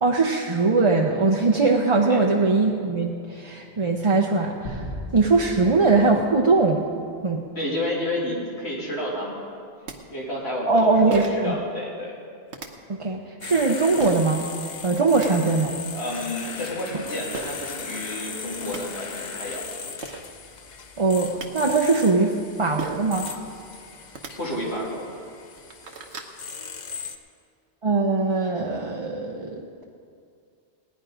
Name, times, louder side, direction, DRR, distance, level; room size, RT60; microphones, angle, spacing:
voice 1, 0.0-4.9 5.1-6.8 7.2-7.4 10.7-11.6 12.9-14.4 14.8-15.7 21.0-22.3 22.6-23.4 27.8-29.8, right 3 dB, 35° right, 0 dB, 0.7 m, -21 dB
sound 1, 4.6-7.2, left 1 dB, 90° left, 2.5 m, -38 dB
voice 2, 7.5-9.4 10.1-12.2 15.1-15.4 15.9-19.6 24.4-25.1, left 1 dB, 70° left, -5 dB, 3.1 m, -30 dB
sound 2, 9.5-9.6 9.9-10.0 11.1-11.5 12.5-12.7 14.0-14.3 14.9-15.3 17.3-17.5 18.3-18.4 18.6-18.8 19.7-19.8 20.0-20.2 21.1-21.5 22.8-23.1 24.0-24.3 25.0-25.1 25.4-26.3, right 4 dB, 80° right, 1.4 m, -35 dB
sound 3, 13.4-27.2, left 5 dB, 45° left, 0.8 m, -38 dB
18.0 x 10.0 x 5.0 m, 2.3 s
omnidirectional pair, 1.1 m